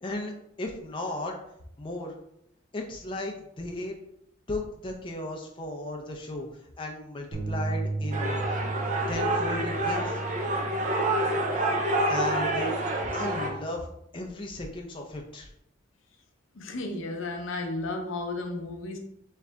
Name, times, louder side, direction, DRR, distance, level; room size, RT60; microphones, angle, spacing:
voice 1, 0.0-0.3 0.6-1.3 1.8-2.2 2.7-4.0 4.5-6.5 6.8-8.4 9.1-10.2 12.1-12.8 13.1-13.9 14.1-15.5, left 1 dB, 25° left, 1 dB, 0.5 m, -35 dB
sound 1, 7.3-13.6, right 2 dB, 55° right, 1.1 m, -35 dB
sound 2, 8.1-13.5, right 1 dB, 40° right, 0.6 m, -28 dB
voice 2, 16.5-19.0, left 2 dB, 80° left, 4 dB, 0.7 m, -33 dB
3.7 x 3.2 x 3.4 m, 0.75 s
head